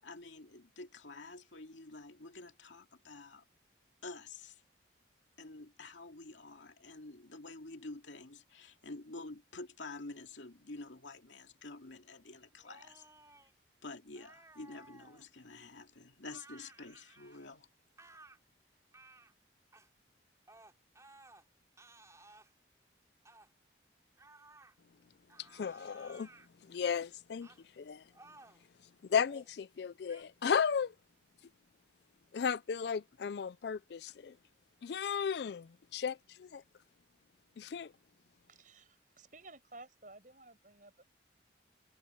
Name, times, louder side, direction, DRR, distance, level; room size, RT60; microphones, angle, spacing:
voice 1, 0.0-3.4 4.0-4.6 5.4-13.0 13.8-17.7, left 3 dB, 90° left, 2.5 m, -49 dB
sound 1, 12.6-13.5 14.2-15.3 16.3-17.5 18.0-18.4 18.9-19.3 19.7-19.9 20.5-21.4 21.8-22.5 23.3-23.5 24.2-24.7 25.3-26.5 27.4-27.6 28.1-28.7 29.2-29.5 30.1-30.2, right 2 dB, 15° right, 3.7 m, -58 dB
voice 2, 25.5-26.3 26.7-27.5 27.8-28.0 29.1-30.9 32.3-34.3 34.8-36.6 37.6-37.9, left 6 dB, 65° left, 0.4 m, -34 dB
voice 3, 38.5-41.0, right 2 dB, 45° right, 6.3 m, -55 dB
head